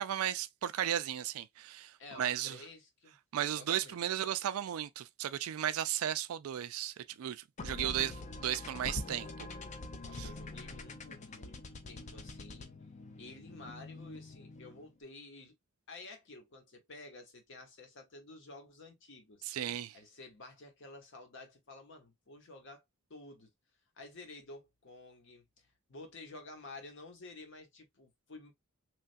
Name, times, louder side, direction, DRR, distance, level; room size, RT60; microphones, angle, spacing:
voice 1, 0.0-2.6 3.3-9.3 10.2-10.3 19.5-20.0, right 11 dB, 80° right, 0.3 m, -35 dB
voice 2, 2.0-3.2 3.5-4.0 10.0-12.7 13.2-15.6 15.9-19.4 19.9-22.8 23.1-23.5 24.0-28.5, left 2 dB, 60° left, 0.9 m, -51 dB
sound 1, 7.6-14.9, left 2 dB, 35° left, 0.4 m, -45 dB
3.2 x 2.3 x 2.5 m
head